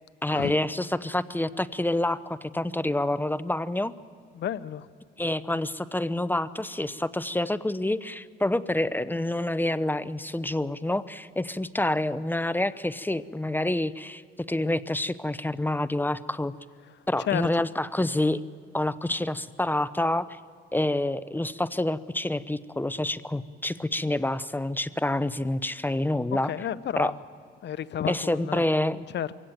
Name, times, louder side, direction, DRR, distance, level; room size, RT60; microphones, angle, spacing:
voice 1, 0.2-3.9 5.2-14.2 14.5-16.5 17.1-18.4 18.7-20.4 20.7-26.5 27.0-27.1 28.1-29.1, left 1 dB, 10° left, 0.7 m, -27 dB
voice 2, 4.3-4.9 16.8-17.7 26.4-27.2 27.6-28.7 29.1-29.3, left 10 dB, 60° left, 0.8 m, -32 dB
23.5 x 17.0 x 8.9 m
cardioid pair, 90°, 20 cm